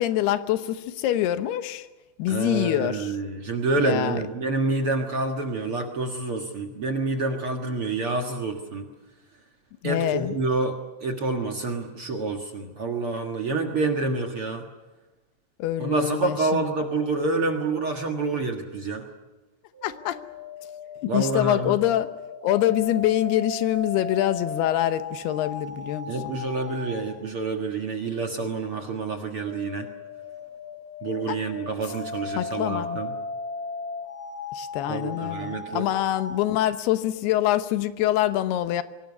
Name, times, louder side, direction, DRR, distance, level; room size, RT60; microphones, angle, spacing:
voice 1, 0.0-1.9 2.2-3.2 3.8-4.2 9.8-10.4 15.6-16.6 19.8-20.2 21.0-22.1 22.4-26.4 31.3-31.4 32.4-33.0 34.5-38.8, left 13 dB, 90° left, 12 dB, 3.0 m, -25 dB
voice 2, 2.3-8.9 9.8-10.8 11.0-14.7 15.8-19.1 21.1-21.8 26.1-29.9 31.0-33.1 34.9-35.9, right 3 dB, 50° right, 4 dB, 1.8 m, -28 dB
sound 1, 19.7-27.1 29.1-36.4, left 3 dB, 15° left, 5.2 m, -37 dB
24.0 x 18.0 x 9.7 m, 1.1 s
omnidirectional pair, 4.5 m